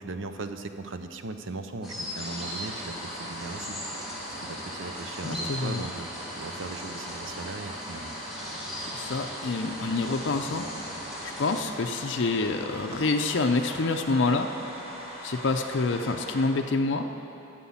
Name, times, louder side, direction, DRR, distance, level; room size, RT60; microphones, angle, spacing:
voice 1, 0.0-3.8 4.4-8.2, right 3 dB, 65° right, 9 dB, 0.6 m, -38 dB
sound 1, 1.8-11.6, equal, ahead, 2.0 m, -39 dB
sound 2, 2.2-16.5, right 1 dB, 30° right, 1.5 m, -41 dB
voice 2, 5.2-5.8 8.9-10.7 11.2-14.5 15.2-17.1, left 3 dB, 60° left, 4 dB, 0.5 m, -27 dB
11.5 x 7.6 x 7.1 m, 2.9 s
head